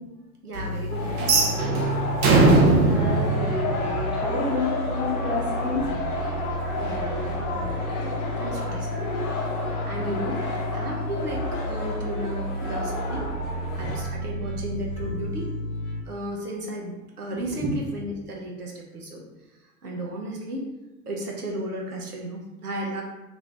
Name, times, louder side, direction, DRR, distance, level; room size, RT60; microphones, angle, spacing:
voice 1, 0.4-1.9 6.8-9.1 9.9-10.4 10.7-13.2 13.7-15.5 16.1-19.2 19.8-20.7 21.1-23.0, right 1 dB, 90° right, -1 dB, 0.8 m, -34 dB
sound 1, 0.5-16.0, equal, 85° left, 0.9 m, -32 dB
sound 2, 0.9-14.0, left 3 dB, 35° left, 0.8 m, -32 dB
sound 3, 1.2-4.3, right 3 dB, 50° right, 0.7 m, -20 dB
voice 2, 2.9-5.9 9.9-10.1 17.5-17.7, left 2 dB, 5° right, -5 dB, 0.4 m, -30 dB
2.8 x 2.6 x 3.2 m, 1.0 s
figure-of-eight pair, 90°, 45 cm